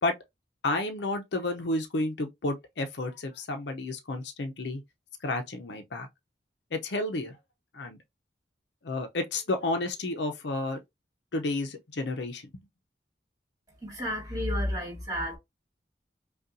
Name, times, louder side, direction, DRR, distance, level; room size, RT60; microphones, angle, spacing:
voice 1, 0.6-4.8 5.2-6.1 6.7-7.4 7.7-8.0 8.8-10.8 11.3-12.5, left 2 dB, 75° left, 0.7 m, -31 dB
voice 2, 13.8-15.4, equal, 25° right, 2.0 m, -31 dB
5.3 x 2.4 x 2.6 m
head